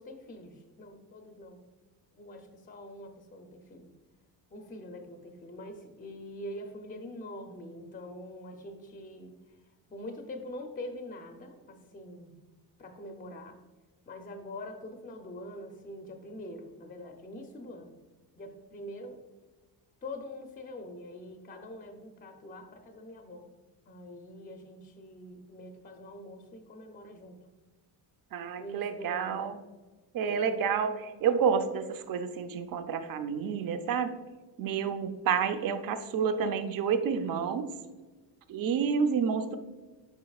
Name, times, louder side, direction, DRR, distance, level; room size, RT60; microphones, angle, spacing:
voice 1, 0.0-1.6 2.1-3.9 4.5-9.3 9.9-12.3 12.8-13.6 14.1-17.9 18.4-19.2 20.0-23.5 23.9-27.4 28.6-29.6 30.3-30.5, left 1 dB, 20° left, 4 dB, 0.5 m, -44 dB
voice 2, 28.3-29.6 30.1-34.2 34.6-37.6 38.5-39.6, right 6 dB, 50° right, 9 dB, 0.6 m, -29 dB
8.0 x 5.1 x 2.3 m, 1.2 s
cardioid pair, 130°, 45 cm